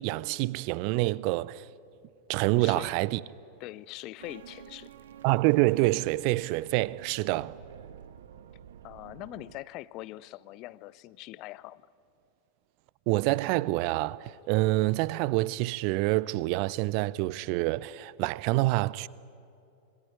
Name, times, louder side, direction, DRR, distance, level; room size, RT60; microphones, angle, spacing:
voice 1, 0.0-1.6 2.3-3.2 5.2-7.5 13.1-19.1, right 19 dB, 45° right, 0.6 m, -27 dB
voice 2, 2.6-3.0 3.6-4.9 7.4-7.5 8.8-11.8, left 17 dB, 40° left, 0.6 m, -42 dB
sound 1, 4.2-9.6, right 9 dB, 60° right, 0.9 m, -49 dB
26.5 x 22.0 x 9.4 m
figure-of-eight pair, 90°, 0 cm